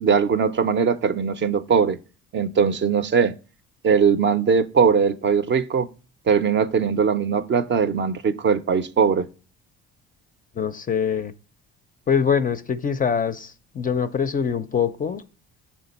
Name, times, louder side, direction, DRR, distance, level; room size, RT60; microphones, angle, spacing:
voice 1, 0.0-2.0 2.3-3.3 3.8-5.9 6.3-9.3, right 6 dB, 40° right, 0.5 m, -20 dB
voice 2, 10.6-11.3 12.1-15.2, left 7 dB, 30° left, 0.4 m, -24 dB
5.8 x 4.3 x 4.0 m
cardioid pair, 100°, 30 cm